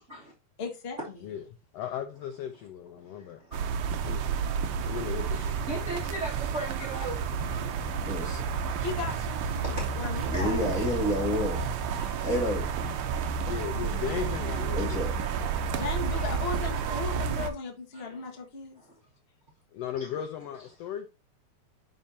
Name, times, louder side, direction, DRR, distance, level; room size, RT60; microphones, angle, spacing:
voice 1, 0.6-1.0 8.8-10.7 15.7-18.8, left 3 dB, 30° left, 1.1 m, -36 dB
voice 2, 1.7-3.4 4.0-4.2 4.8-5.6 13.5-15.1 19.7-21.1, left 9 dB, 75° left, 1.6 m, -36 dB
voice 3, 3.1-3.6 5.3-8.1 9.6-10.4 16.1-16.2 17.9-18.3 18.8-18.9, right 1 dB, 30° right, 1.9 m, -39 dB
sound 1, 3.5-17.5, right 6 dB, 85° right, 1.2 m, -31 dB
Thunder, 6.9-11.9, left 1 dB, 50° right, 4.0 m, -39 dB
voice 4, 8.0-8.4 10.3-11.6 12.0-12.6 14.7-15.1, left 1 dB, ahead, 1.2 m, -30 dB
11.0 x 4.4 x 2.8 m
omnidirectional pair, 3.3 m